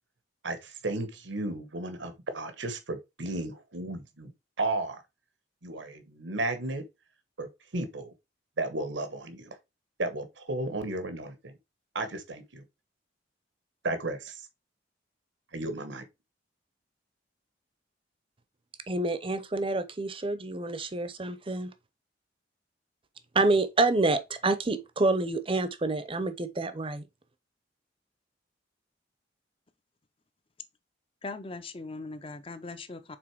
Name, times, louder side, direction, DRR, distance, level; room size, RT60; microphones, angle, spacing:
voice 1, 0.4-4.3 4.6-5.0 5.6-6.8 7.4-8.1 8.6-9.6 10.0-11.5 11.9-12.6 13.8-14.4 15.5-16.0, right 2 dB, 80° right, 1.2 m, -34 dB
voice 2, 18.9-21.7 23.3-27.1, right 2 dB, 30° right, 0.7 m, -27 dB
voice 3, 31.2-33.2, left 3 dB, 30° left, 0.7 m, -40 dB
6.1 x 4.1 x 4.6 m
head